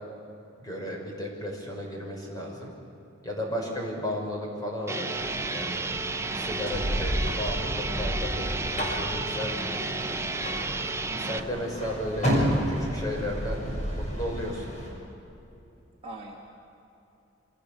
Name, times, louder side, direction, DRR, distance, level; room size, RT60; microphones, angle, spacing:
voice 1, 0.6-2.7 3.2-5.8 6.3-10.2 11.2-12.3 12.6-13.6 13.9-14.7, left 1 dB, 20° left, -1 dB, 6.4 m, -34 dB
sound 1, 4.9-11.4, right 3 dB, 15° right, 0.6 m, -32 dB
sound 2, 5.1-14.9, equal, 35° left, 7.2 m, -31 dB
voice 2, 11.1-11.5 16.0-16.4, right 1 dB, 30° right, -2 dB, 2.3 m, -42 dB
29.0 x 27.0 x 7.1 m, 2.9 s
head